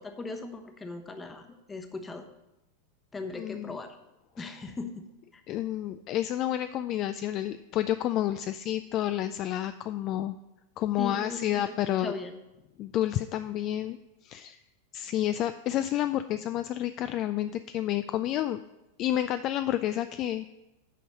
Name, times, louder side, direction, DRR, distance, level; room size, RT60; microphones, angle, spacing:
voice 1, 0.0-2.3 3.1-4.0 4.4-5.1 5.3-5.4 11.0-12.4, left 3 dB, 15° left, 7 dB, 1.0 m, -39 dB
voice 2, 3.4-3.8 4.4-4.5 5.5-10.4 10.8-12.1 12.8-14.0 14.2-14.6 14.9-18.6 19.0-20.5, left 12 dB, 35° left, 11 dB, 0.3 m, -30 dB
9.1 x 5.4 x 6.4 m, 0.96 s
figure-of-eight pair, 90°, 0 cm